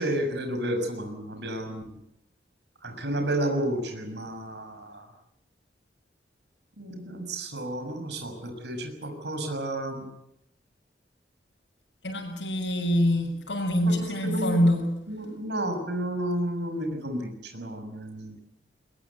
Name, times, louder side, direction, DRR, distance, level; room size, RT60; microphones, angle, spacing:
voice 1, 0.0-1.8 2.8-5.0 6.8-10.1 14.2-14.6 15.1-18.4, right 1 dB, 75° right, 5 dB, 6.4 m, -31 dB
voice 2, 12.0-14.9, equal, 85° left, 0 dB, 6.7 m, -25 dB
22.5 x 21.5 x 8.4 m, 0.81 s
head